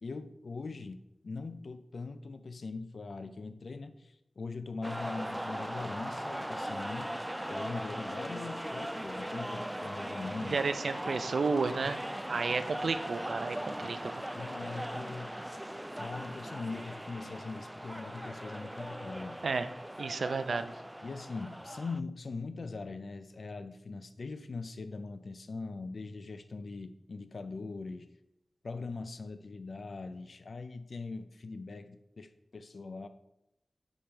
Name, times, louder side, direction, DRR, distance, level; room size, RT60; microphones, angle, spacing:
voice 1, 0.0-7.1 7.5-10.6 12.3-12.4 13.8-15.3 16.0-19.5 21.0-28.1 28.6-33.1, left 3 dB, 70° left, 10 dB, 0.4 m, -41 dB
sound 1, 4.8-22.0, right 1 dB, 10° right, 0.3 m, -39 dB
voice 2, 10.5-12.0 12.3-14.2 19.4-19.7 20.0-20.7, right 4 dB, 80° right, 11 dB, 0.5 m, -32 dB
7.3 x 5.2 x 4.4 m, 0.85 s
wide cardioid pair, 70°, 0 cm